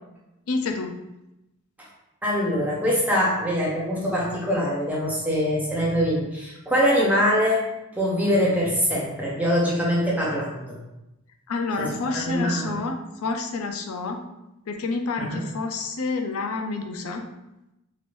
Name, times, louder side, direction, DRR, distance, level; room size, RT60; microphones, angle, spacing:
voice 1, 0.5-1.0 11.5-14.2 14.7-17.2, left 3 dB, 75° left, 4 dB, 0.4 m, -29 dB
voice 2, 2.2-7.7 7.9-10.8 11.8-12.9 15.2-15.4, equal, 5° right, -5 dB, 0.6 m, -23 dB
3.2 x 2.9 x 2.5 m, 0.93 s
head